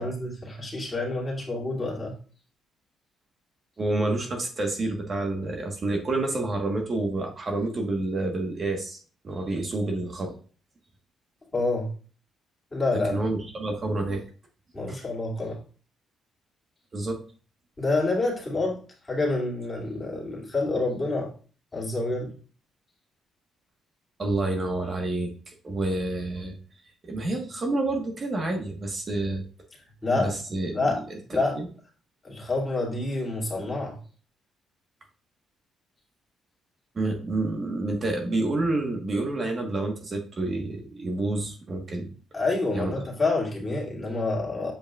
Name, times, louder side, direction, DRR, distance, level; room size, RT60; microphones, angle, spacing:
voice 1, 0.0-2.2 11.5-11.9 12.7-13.1 14.7-15.6 17.8-21.3 21.7-22.3 30.0-30.4 30.7-31.0 31.3-31.6 32.2-34.0 42.3-44.7, left 2 dB, 25° left, -3 dB, 2.5 m, -28 dB
voice 2, 3.8-9.0 9.2-10.4 13.1-14.2 14.9-15.0 16.9-17.2 24.2-25.3 25.6-26.5 27.0-29.4 30.1-30.7 36.9-42.1 42.7-42.9, right 2 dB, 40° right, 2 dB, 1.4 m, -28 dB
7.6 x 5.1 x 2.4 m, 0.39 s
cardioid pair, 90°, 0 cm